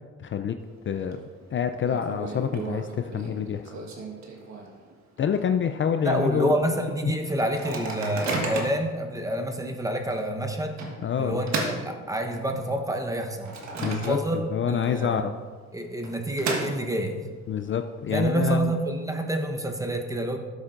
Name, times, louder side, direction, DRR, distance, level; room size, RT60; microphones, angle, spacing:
voice 1, 0.2-0.6 0.9-1.2 1.5-3.7 5.2-6.6 7.0-7.1 11.0-11.4 13.8-15.3 17.5-18.7, left 8 dB, 40° left, 8 dB, 0.4 m, -27 dB
Microwave oven, 0.6-1.1 1.4-1.5 1.8-4.9 5.4-5.5 5.7-6.0 6.5-6.6 7.4-8.9 9.5-9.7 10.8-12.6 13.1-14.6 14.8-14.9 15.8-17.2, right 3 dB, 65° right, 1.5 m, -34 dB
voice 2, 6.0-10.8 11.2-15.3 15.7-17.2 18.1-20.4, right 1 dB, 10° right, 4 dB, 1.0 m, -28 dB
12.5 x 7.2 x 2.5 m, 1.6 s
cardioid pair, 90°, 30 cm